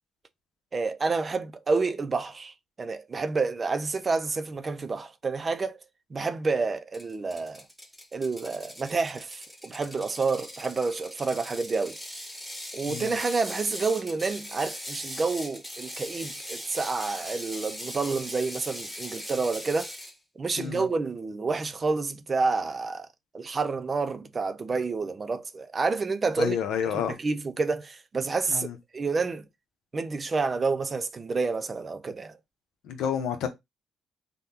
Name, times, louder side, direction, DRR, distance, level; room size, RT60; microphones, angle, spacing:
voice 1, 0.7-5.8 6.1-7.6 8.1-12.0 12.7-19.9 20.4-23.1 23.3-28.7 28.9-29.5 29.9-32.4, right 4 dB, 35° right, 0.4 m, -29 dB
Ratchet pawl, 6.9-20.1, equal, 5° left, 0.9 m, -40 dB
voice 2, 12.9-13.2 20.6-20.9 26.4-27.1 28.5-28.7 32.8-33.5, left 8 dB, 85° left, 0.7 m, -30 dB
3.5 x 2.2 x 2.8 m
cardioid pair, 90°, 0 cm